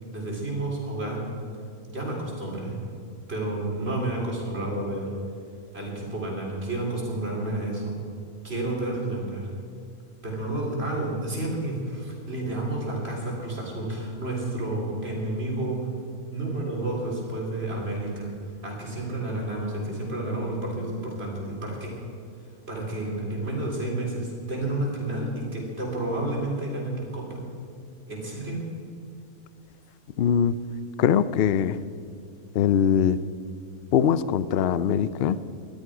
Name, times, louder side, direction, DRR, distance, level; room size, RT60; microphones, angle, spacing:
voice 1, 0.1-1.3 1.9-2.8 3.3-5.1 5.7-8.0 8.4-9.5 10.2-15.8 16.3-18.3 18.6-21.9 22.7-27.4 28.1-28.6, right 2 dB, 45° right, -2 dB, 4.0 m, -30 dB
voice 2, 30.2-30.5 31.0-31.8 32.5-33.2 33.9-35.4, left 8 dB, 60° left, 15 dB, 0.6 m, -22 dB
20.5 x 13.0 x 5.0 m, 2.4 s
omnidirectional pair, 1.5 m